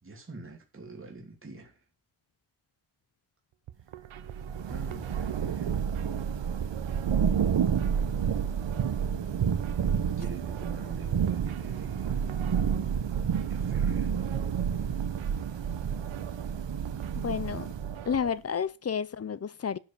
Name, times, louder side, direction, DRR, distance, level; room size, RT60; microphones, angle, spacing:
voice 1, 0.0-1.8 4.7-5.9 10.2-12.1 13.3-14.3, right 3 dB, 25° right, 2.7 m, -46 dB
sound 1, 3.5-18.3, right 11 dB, 85° right, 0.9 m, -46 dB
Thunder / Rain, 4.1-18.2, right 7 dB, 65° right, 1.2 m, -30 dB
voice 2, 17.2-17.7 18.1-19.8, left 7 dB, 35° left, 0.5 m, -30 dB
11.5 x 5.3 x 7.2 m
wide cardioid pair, 155°, 47 cm